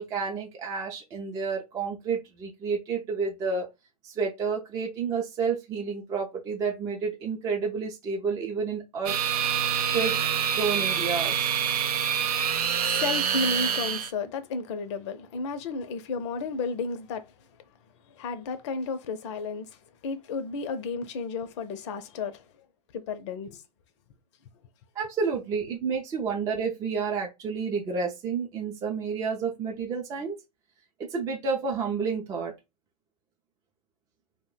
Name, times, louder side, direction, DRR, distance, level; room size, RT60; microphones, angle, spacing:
voice 1, 0.0-3.7 4.0-9.2 9.9-11.5 25.0-30.4 31.0-32.5, right 5 dB, 15° right, 0.4 m, -30 dB
sound 1, 9.1-14.1, right 8 dB, 70° right, 0.5 m, -26 dB
voice 2, 12.2-17.6 18.1-22.5 22.9-23.6, left 4 dB, 45° left, 0.6 m, -33 dB
2.5 x 2.1 x 3.8 m
hypercardioid pair, 115°, 21 cm